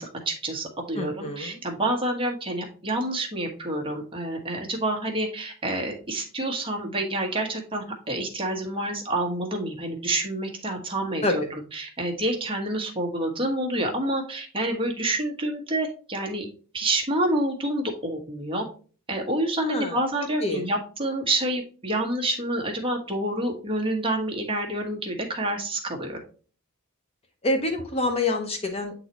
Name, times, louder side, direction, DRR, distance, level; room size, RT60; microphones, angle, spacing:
voice 1, 0.0-16.5 16.7-18.6 19.1-26.2, right 1 dB, 25° right, 1 dB, 1.3 m, -28 dB
voice 2, 1.0-1.6 11.2-11.4 19.6-20.0 20.4-20.6 27.4-28.9, left 2 dB, 25° left, 5 dB, 0.7 m, -26 dB
8.1 x 4.0 x 3.0 m, 0.39 s
head